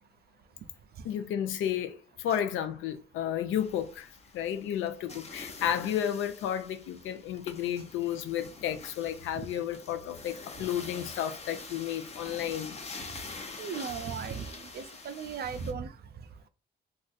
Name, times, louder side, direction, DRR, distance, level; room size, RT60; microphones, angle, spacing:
voice 1, 1.0-4.1 4.3-12.8, left 10 dB, 90° left, 0.5 m, -32 dB
Water on Coal, 3.5-15.7, left 3 dB, 30° left, 0.7 m, -46 dB
voice 2, 13.6-15.9, right 6 dB, 55° right, 0.5 m, -37 dB
2.6 x 2.4 x 3.9 m
cardioid pair, 90°, 20 cm